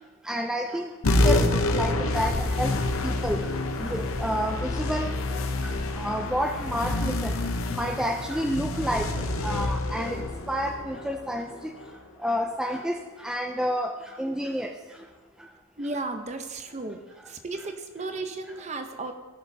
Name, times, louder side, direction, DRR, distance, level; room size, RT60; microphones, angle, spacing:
voice 1, 0.3-0.9 1.2-2.3 2.6-2.7 3.0-3.5 3.8-5.1 5.6-7.3 7.8-9.1 9.4-11.5 12.2-13.9 14.2-14.7, equal, 5° right, 3 dB, 0.3 m, -29 dB
sound 1, 1.0-11.9, left 2 dB, 85° left, 0.8 m, -27 dB
voice 2, 15.8-17.0 17.3-19.1, right 2 dB, 35° right, 7 dB, 0.7 m, -34 dB
15.5 x 6.4 x 2.7 m, 1.3 s
head